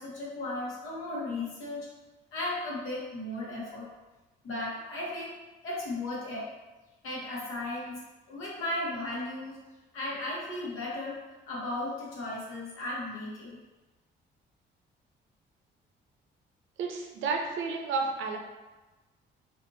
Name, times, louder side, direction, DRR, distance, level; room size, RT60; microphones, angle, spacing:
voice 1, 0.0-1.9 2.3-3.9 4.4-6.5 7.0-8.0 8.3-9.6 9.9-11.2 11.5-13.6, left 1 dB, 90° left, -5 dB, 0.9 m, -35 dB
voice 2, 16.8-18.4, right 4 dB, 80° right, 1 dB, 0.5 m, -31 dB
2.7 x 2.4 x 2.6 m, 1.2 s
cardioid pair, 90°, 20 cm